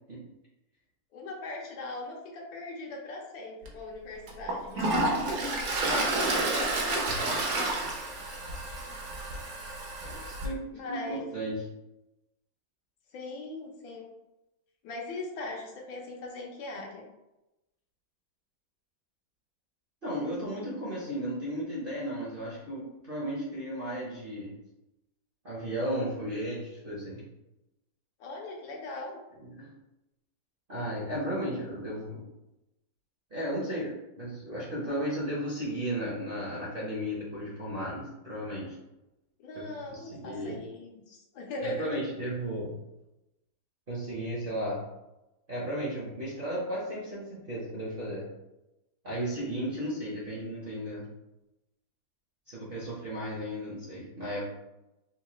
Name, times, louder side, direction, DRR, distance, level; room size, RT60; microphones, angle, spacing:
voice 1, 1.1-5.5 5.9-8.0 10.7-11.2 13.1-14.1 14.8-17.1 28.2-29.2 39.4-42.0, left 2 dB, 85° left, -1 dB, 1.6 m, -40 dB
Toilet flush, 3.6-3.7 4.3-10.5, right 2 dB, 65° right, 1.0 m, -30 dB
voice 2, 10.0-11.6 20.0-24.5 25.4-27.2 29.4-29.7 30.7-32.2 33.3-38.8 39.5-40.6 41.6-42.7 43.9-44.8 45.5-48.3 49.0-51.0 52.5-54.6, equal, 45° right, -7 dB, 0.7 m, -34 dB
4.1 x 2.3 x 3.0 m, 0.94 s
omnidirectional pair, 2.0 m